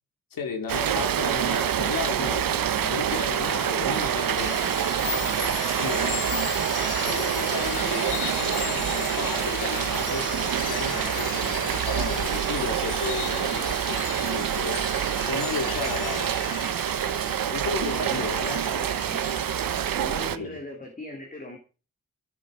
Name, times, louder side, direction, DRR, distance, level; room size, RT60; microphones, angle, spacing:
voice 1, 0.3-4.6 5.8-6.2 6.6-14.8 15.3-16.4 17.5-18.7 20.4-20.6, left 5 dB, 85° left, 3.2 m, -34 dB
Rain, 0.7-20.4, right 9 dB, 90° right, 1.1 m, -27 dB
sound 1, 4.4-20.0, left 8 dB, 70° left, 1.9 m, -37 dB
sound 2, 4.9-19.8, right 4 dB, 30° right, 1.4 m, -44 dB
voice 2, 17.8-19.4 19.9-21.6, left 1 dB, 25° left, 3.3 m, -40 dB
16.5 x 10.5 x 5.2 m
wide cardioid pair, 165°, 33 cm